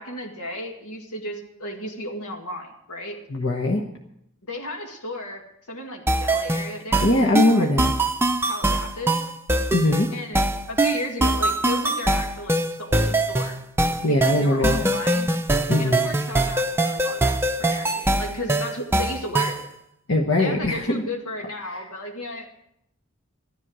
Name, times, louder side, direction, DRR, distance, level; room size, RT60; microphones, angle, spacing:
voice 1, 0.0-3.2 4.5-5.4 5.7-7.1 7.5-7.7 8.5-9.3 10.1-13.6 14.1-15.3 15.8-17.2 17.6-19.7 20.4-22.5, left 1 dB, 90° left, 1 dB, 2.1 m, -34 dB
voice 2, 3.3-3.8 7.0-7.9 9.7-10.1 14.0-14.9 15.7-16.0 20.1-21.0 21.6-21.8, left 1 dB, 60° left, 1 dB, 1.2 m, -21 dB
sound 1, 6.1-19.7, right 1 dB, 10° right, 0.5 m, -23 dB
14.0 x 11.0 x 6.2 m, 0.76 s
head